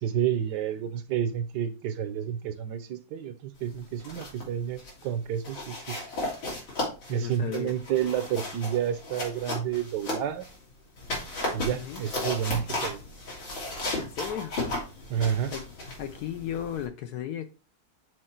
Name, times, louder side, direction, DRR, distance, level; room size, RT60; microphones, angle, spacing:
voice 1, 0.0-5.9 7.1-10.4 11.5-13.0 15.1-15.5, right 9 dB, 70° right, 1.2 m, -30 dB
sound 1, 3.8-4.5 4.8-5.0 5.4-10.6 11.0-16.9, left 2 dB, 85° left, 3.5 m, -35 dB
voice 2, 7.1-7.7 11.7-12.0 13.9-14.8 15.5-15.6 16.0-17.5, left 9 dB, 70° left, 1.0 m, -35 dB
6.4 x 4.4 x 4.3 m
omnidirectional pair, 2.0 m